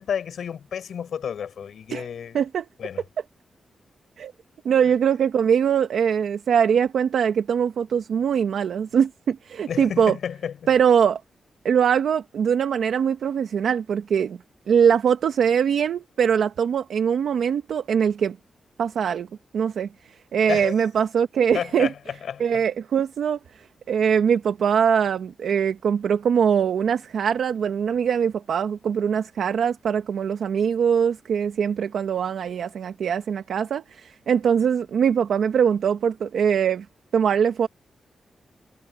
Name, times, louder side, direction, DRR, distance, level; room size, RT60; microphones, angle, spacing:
voice 1, 0.0-2.4 2.8-3.0 9.7-10.6 20.5-20.7 21.5-22.6, left 8 dB, 70° left, 6.0 m, -31 dB
voice 2, 2.3-2.6 4.2-4.3 4.6-10.2 10.7-11.2 11.6-14.4 14.7-18.4 18.8-19.3 19.5-19.9 20.3-21.9 22.4-23.4 23.9-36.8 37.1-37.7, right 7 dB, 85° right, 1.2 m, -22 dB
wide cardioid pair, 180°, 0 cm